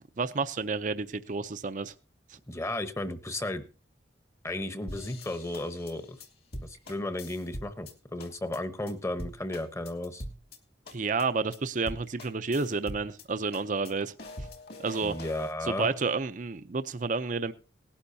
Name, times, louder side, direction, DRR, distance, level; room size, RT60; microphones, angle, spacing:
voice 1, 0.2-1.9 10.9-14.1 14.8-15.1 15.6-17.5, right 4 dB, 45° right, 11 dB, 0.6 m, -30 dB
voice 2, 2.5-3.6 4.4-6.2 6.6-10.2 15.0-15.9, left 1 dB, 15° left, 10 dB, 1.0 m, -34 dB
sound 1, 4.9-7.9 8.2-8.6 8.9-9.0 9.2-10.6 10.9-11.2 11.5-11.6 11.9-13.3 13.5-15.5, left 1 dB, 60° left, 2.5 m, -43 dB
19.0 x 11.5 x 2.7 m, 0.34 s
head